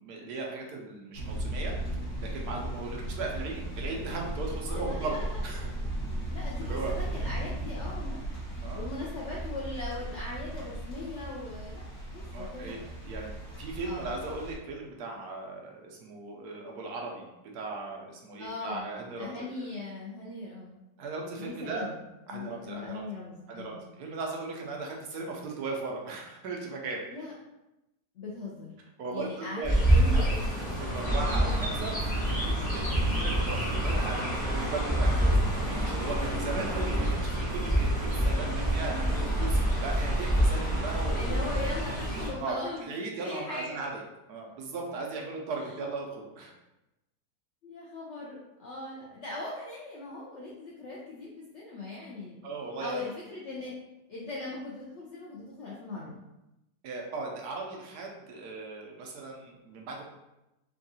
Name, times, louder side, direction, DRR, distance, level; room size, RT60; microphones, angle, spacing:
voice 1, 0.0-1.7 2.2-5.2 5.4-5.7 6.6-6.9 8.6-8.8 12.3-17.3 17.5-19.6 21.0-21.9 22.3-23.0 23.5-27.0 29.0-30.2 30.6-41.4 42.4-43.9 44.3-46.5 52.4-53.1 56.8-60.0, right 3 dB, 75° right, 0 dB, 1.1 m, -37 dB
sound 1, 1.1-14.6, right 1 dB, 55° left, 1.5 m, -36 dB
voice 2, 4.7-5.4 5.8-5.9 6.3-8.2 8.7-11.8 12.1-12.8 13.8-14.1 18.4-18.9 19.2-20.7 21.4-22.0 22.3-23.8 27.1-27.3 28.2-28.7 29.1-29.6 29.9-30.4 38.3-39.2 41.1-42.9 43.2-43.8 47.6-52.4 52.8-53.7 54.1-56.2, left 2 dB, 70° left, -5 dB, 0.6 m, -39 dB
Chirp tweet, 29.6-42.3, right 1 dB, 5° left, 0.8 m, -27 dB
3.6 x 2.3 x 2.6 m, 0.94 s
omnidirectional pair, 1.7 m